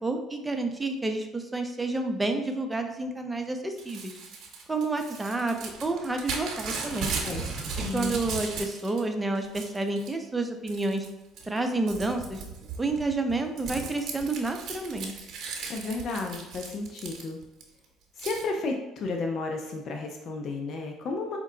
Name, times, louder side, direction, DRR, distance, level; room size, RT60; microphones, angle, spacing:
voice 1, 0.0-4.1 4.7-7.1 7.8-11.1 11.5-12.4 12.8-15.1, right 2 dB, 15° right, 5 dB, 0.5 m, -29 dB
Crumpling crinkling / Tearing, 3.8-9.0 9.3-10.1 10.7-11.1 11.4-17.6 18.2-18.4, right 5 dB, 60° right, 0.8 m, -37 dB
voice 2, 7.8-8.2 15.7-17.4 18.2-21.4, left 3 dB, 55° left, 3 dB, 0.5 m, -32 dB
4.6 x 2.2 x 3.7 m, 1.0 s
supercardioid pair, 85°, 0 cm